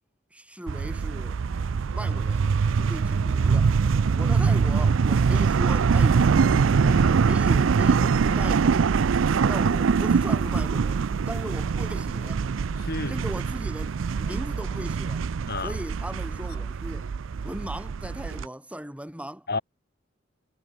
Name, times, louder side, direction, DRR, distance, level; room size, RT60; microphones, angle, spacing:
voice 1, 0.3-1.4 1.9-2.5 2.8-3.7 4.2-6.4 7.0-8.9 9.4-12.5 13.1-15.2 15.6-17.1 17.4-19.5, equal, 5° right, 4.1 m, -38 dB
sound 1, 0.7-18.5, right 5 dB, 75° right, 0.4 m, -23 dB
voice 2, 6.8-7.1 12.7-13.2 15.5-15.8 19.5-19.6, left 3 dB, 55° left, 3.4 m, -31 dB
head